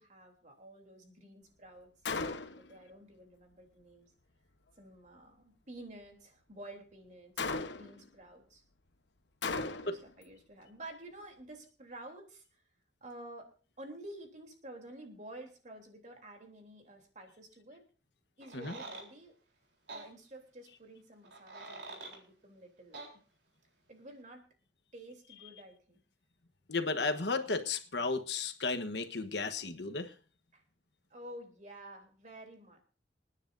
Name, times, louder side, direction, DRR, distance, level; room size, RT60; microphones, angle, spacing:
voice 1, 0.0-1.9 2.6-4.1 4.8-7.5 7.7-8.6 9.6-12.6 13.0-17.8 18.4-19.3 19.9-23.1 23.9-24.5 24.9-26.0 30.5-30.6 31.1-32.8, right 1 dB, 45° right, 3 dB, 3.4 m, -51 dB
Gunshot gunfire, 2.0-2.7 7.4-8.0 9.4-10.1, left 4 dB, 90° left, 1.2 m, -36 dB
sound 1, 18.4-19.1 19.9-20.1 21.2-22.2 22.9-23.1, right 3 dB, 80° right, 3.7 m, -46 dB
voice 2, 26.7-30.1, left 3 dB, 70° left, 8 dB, 1.3 m, -34 dB
28.5 x 9.8 x 2.7 m, 0.39 s
head